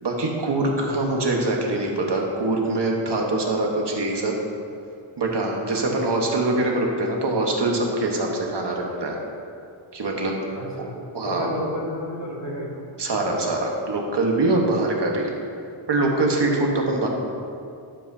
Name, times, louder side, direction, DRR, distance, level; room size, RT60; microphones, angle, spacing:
voice 1, 0.0-4.3 5.2-9.2 9.9-10.3 10.8-10.9 11.1-11.6 13.0-15.3 15.9-17.1, right 2 dB, 60° right, 0 dB, 1.3 m, -23 dB
voice 2, 10.5-10.9 11.2-12.8 16.7-16.8, left 1 dB, 35° left, -5 dB, 2.3 m, -32 dB
12.5 x 7.3 x 2.7 m, 2.4 s
wide cardioid pair, 80°, 48 cm